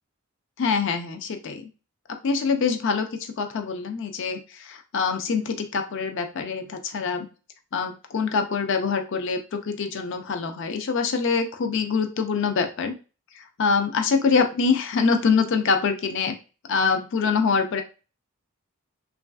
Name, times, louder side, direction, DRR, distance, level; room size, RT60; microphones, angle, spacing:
voice 1, 0.6-1.7 2.2-3.1 3.4-7.3 7.7-13.0 13.6-16.3 16.7-17.8, left 5 dB, 60° left, 6 dB, 0.4 m, -24 dB
3.1 x 2.4 x 2.3 m, 0.32 s
head